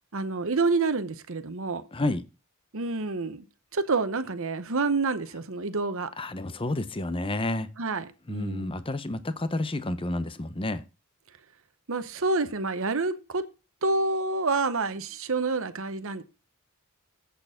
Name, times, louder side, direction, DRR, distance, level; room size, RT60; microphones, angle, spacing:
voice 1, 0.1-1.8 2.7-3.4 3.7-6.1 7.8-8.7 11.9-13.5 13.8-16.2, right 3 dB, 65° right, 1.0 m, -28 dB
voice 2, 1.9-2.2 6.2-7.7 8.3-10.8, left 2 dB, 25° left, 0.7 m, -30 dB
8.1 x 6.7 x 5.0 m
head